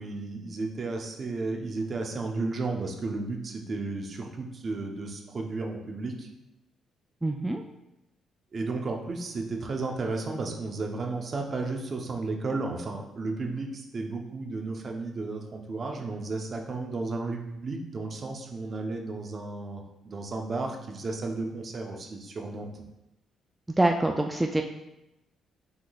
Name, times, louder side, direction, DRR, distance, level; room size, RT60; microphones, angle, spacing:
voice 1, 0.0-6.3 8.5-22.8, right 3 dB, 45° right, 2 dB, 0.7 m, -33 dB
voice 2, 7.2-7.6 23.8-24.6, right 2 dB, 10° right, 3 dB, 0.3 m, -25 dB
6.0 x 3.7 x 2.3 m, 0.91 s
cardioid pair, 90°, 0 cm